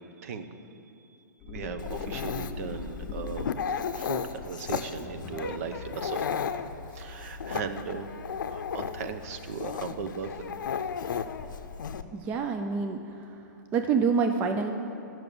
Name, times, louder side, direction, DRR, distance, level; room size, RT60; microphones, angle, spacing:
voice 1, 0.2-0.6 1.5-3.5 3.9-6.3 6.9-8.1 8.5-10.5, right 5 dB, 50° right, 9 dB, 0.7 m, -37 dB
sound 1, 1.4-3.9 4.8-5.8, left 4 dB, 15° left, 0.8 m, -40 dB
Dog, 1.8-12.0, left 7 dB, 80° left, 0.6 m, -35 dB
voice 2, 12.1-13.0 13.7-14.7, right 5 dB, 15° right, 5 dB, 0.3 m, -26 dB
10.5 x 6.0 x 6.7 m, 2.7 s
hypercardioid pair, 155°, 10 cm